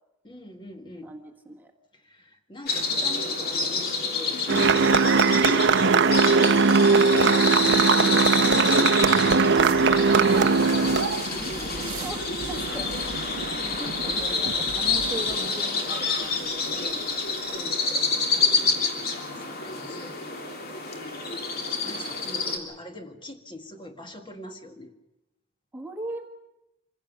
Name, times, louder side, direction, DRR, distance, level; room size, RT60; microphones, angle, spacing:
voice 1, 0.2-1.1 1.9-6.3 9.4-12.2 17.5-17.8 18.3-20.2 20.9-24.9, left 1 dB, 25° left, 4 dB, 1.7 m, -43 dB
voice 2, 1.0-1.7 11.5-13.0 13.6-17.7 18.6-19.0 19.8-20.6 25.7-26.3, right 2 dB, 10° right, 3 dB, 1.4 m, -40 dB
sound 1, 2.7-22.6, left 3 dB, 45° left, 3.1 m, -28 dB
sound 2, 4.5-11.3, right 4 dB, 55° right, 0.8 m, -19 dB
sound 3, 9.6-17.6, right 4 dB, 85° right, 0.9 m, -39 dB
25.5 x 16.5 x 7.1 m, 0.93 s
head